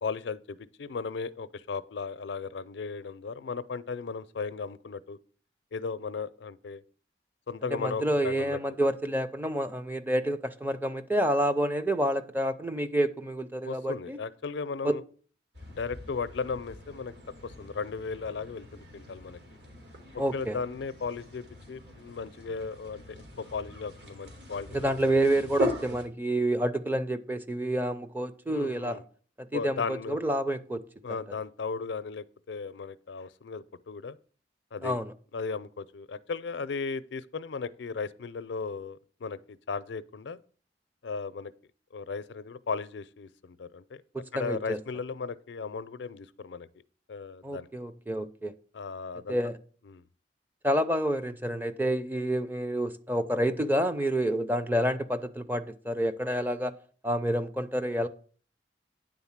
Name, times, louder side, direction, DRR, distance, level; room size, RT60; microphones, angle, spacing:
voice 1, 0.0-5.2 5.7-6.8 7.5-8.6 13.6-15.0 15.7-17.1 17.4-19.4 20.1-24.9 28.5-29.0 29.5-30.2 31.0-34.2 34.7-35.0 35.3-40.4 41.0-41.5 41.9-44.0 44.3-46.7 47.1-47.7 48.7-49.4 49.9-50.0, left 5 dB, 75° left, 0.5 m, -36 dB
voice 2, 7.7-14.2 14.8-15.0 20.2-20.6 24.7-29.0 29.4-30.8 31.1-31.2 34.8-35.1 44.1-44.8 47.4-48.5 49.3-49.6 50.6-56.7 57.0-58.1, right 1 dB, 10° right, 0.5 m, -28 dB
sound 1, 15.5-26.0, right 1 dB, 65° right, 2.7 m, -41 dB
9.7 x 3.9 x 7.2 m
head